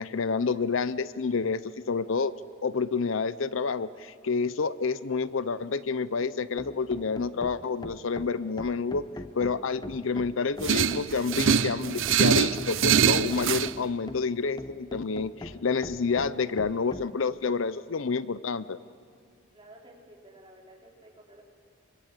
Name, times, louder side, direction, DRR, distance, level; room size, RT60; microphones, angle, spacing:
voice 1, 0.0-1.6 1.9-2.3 2.6-9.0 9.3-18.8, left 4 dB, 70° left, 16 dB, 0.6 m, -29 dB
sound 1, 6.2-17.1, left 1 dB, 20° left, 0.7 m, -42 dB
sound 2, 10.6-13.7, right 7 dB, 65° right, 0.6 m, -24 dB
voice 2, 19.5-21.4, right 1 dB, 25° right, -2 dB, 4.6 m, -52 dB
26.0 x 24.5 x 8.1 m, 2.1 s
head